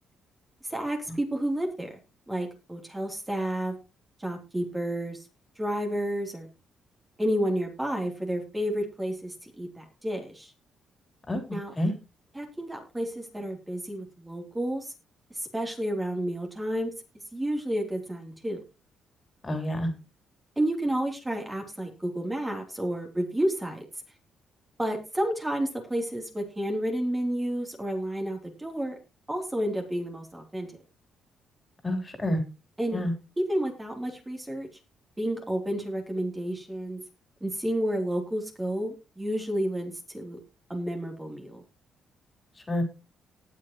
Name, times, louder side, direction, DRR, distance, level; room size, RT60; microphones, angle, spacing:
voice 1, 0.6-1.9 2.3-3.7 4.2-5.3 5.6-6.5 7.2-10.5 11.5-11.7 12.3-14.9 15.3-16.9 17.3-18.6 20.6-23.8 24.8-29.0 29.3-30.7 32.8-33.0 33.4-34.7 35.2-37.0 37.4-40.4 40.7-41.6, right 1 dB, 15° right, 1 dB, 3.2 m, -30 dB
voice 2, 19.4-19.9 31.8-32.4 32.9-33.1 42.7-42.8, left 1 dB, 25° left, 4 dB, 3.6 m, -27 dB
19.0 x 6.8 x 3.0 m, 0.28 s
cardioid pair, 90°, 0 cm